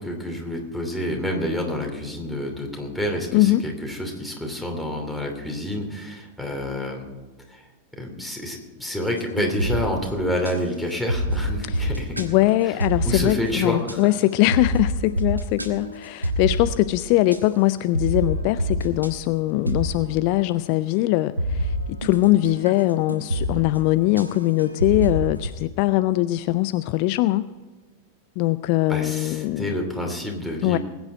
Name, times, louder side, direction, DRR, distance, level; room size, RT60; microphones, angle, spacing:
voice 1, 0.0-7.1 7.5-7.6 8.0-12.3 13.1-14.0 28.9-30.8, left 1 dB, ahead, 2 dB, 2.8 m, -28 dB
sound 1, 9.0-10.5 11.1-12.3 12.8-13.5 13.9-14.0 14.5-17.4 17.9-19.1 19.7-20.5 21.4-25.5, equal, 85° right, 1.3 m, -27 dB
voice 2, 12.2-27.5 28.4-29.7 30.6-30.8, left 17 dB, 45° left, 14 dB, 0.4 m, -21 dB
20.5 x 9.3 x 4.4 m, 1.3 s
figure-of-eight pair, 90°, 0 cm